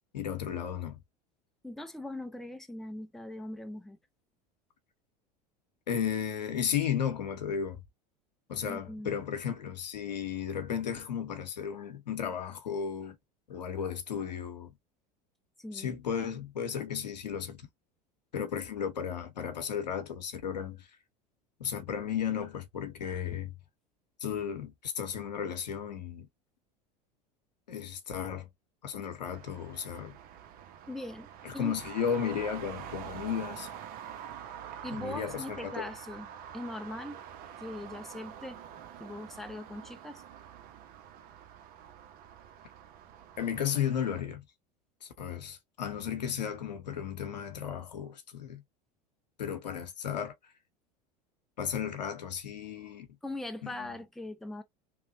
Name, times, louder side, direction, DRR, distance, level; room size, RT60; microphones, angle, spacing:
voice 1, 0.1-1.0 5.9-7.8 8.5-13.2 13.5-14.7 15.7-17.7 18.3-20.9 21.6-23.5 24.2-26.3 27.7-28.5 28.8-30.2 31.4-33.7 34.9-35.9 43.4-44.4 45.0-48.6 49.4-50.3 51.6-53.1 53.8-53.9, left 8 dB, 85° left, 0.8 m, -34 dB
voice 2, 1.6-4.0 8.7-9.2 15.6-16.0 30.9-31.3 31.5-31.7 34.8-37.2 37.6-38.6 39.0-40.2 53.2-54.6, left 1 dB, ahead, 0.5 m, -41 dB
Traffic noise roadway noise, 29.3-44.2, right 9 dB, 45° right, 0.6 m, -46 dB
3.0 x 2.1 x 2.6 m
hypercardioid pair, 80°, 21 cm